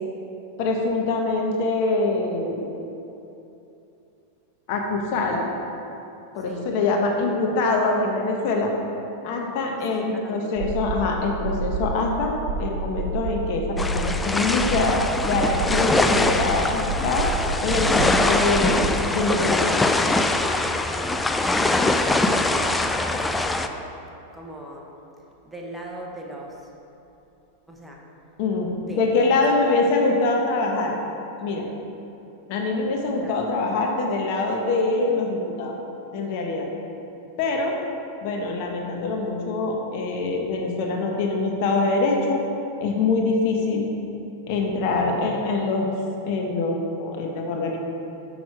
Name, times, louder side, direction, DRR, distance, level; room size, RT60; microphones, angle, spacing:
voice 1, 0.6-2.7 4.7-5.5 6.3-8.7 9.2-12.3 12.6-17.3 17.6-19.8 28.4-28.7 29.0-31.0 31.4-31.7 32.5-35.8 36.1-36.7 37.4-37.8 38.2-42.4 42.8-43.9 44.5-45.9 46.3-47.8, left 3 dB, 55° left, 1 dB, 1.1 m, -24 dB
voice 2, 9.9-10.5 20.9-21.3 21.7-23.9 24.3-24.9 25.4-26.7 27.7-28.0 28.7-29.8 33.2-33.3, right 1 dB, 5° right, -2 dB, 1.0 m, -39 dB
sound 1, 10.6-19.0, right 3 dB, 60° right, 1.5 m, -30 dB
sound 2, 13.8-23.7, left 2 dB, 10° left, 0.4 m, -23 dB
6.5 x 6.1 x 4.8 m, 2.9 s
hypercardioid pair, 115°, 0 cm